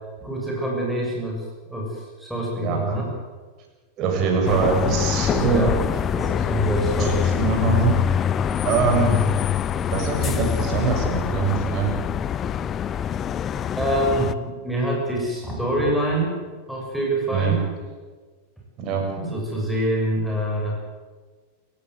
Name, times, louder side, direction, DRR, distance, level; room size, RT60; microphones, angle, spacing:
voice 1, 0.2-1.4 1.7-3.1 5.5-5.8 6.1-7.2 13.7-16.4 16.7-17.7 19.2-20.8, right 1 dB, ahead, -3 dB, 6.9 m, -25 dB
voice 2, 2.6-3.0 4.0-5.7 7.0-7.9 8.6-9.3 9.9-12.0 17.3-17.6 18.8-19.0, right 5 dB, 35° right, 2 dB, 7.5 m, -23 dB
sound 1, 4.4-14.3, left 8 dB, 25° left, 0.9 m, -24 dB
29.0 x 15.5 x 8.1 m, 1.4 s
figure-of-eight pair, 90°, 0 cm